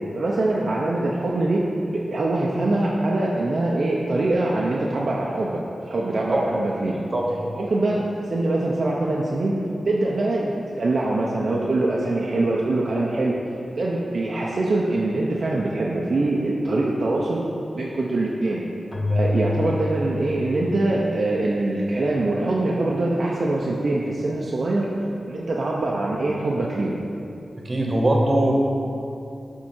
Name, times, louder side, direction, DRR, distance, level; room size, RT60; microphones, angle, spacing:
voice 1, 0.1-5.6 5.9-6.9 7.6-9.5 9.8-13.4 13.7-17.4 17.7-18.6 19.1-24.9 25.3-27.0, right 2 dB, 60° right, -4 dB, 0.6 m, -23 dB
Keyboard (musical), 18.9-22.4, left 2 dB, 30° left, 0.9 m, -29 dB
voice 2, 27.6-28.5, right 1 dB, 40° right, -1 dB, 1.1 m, -20 dB
7.4 x 3.7 x 4.3 m, 2.7 s
cardioid pair, 65°, 0 cm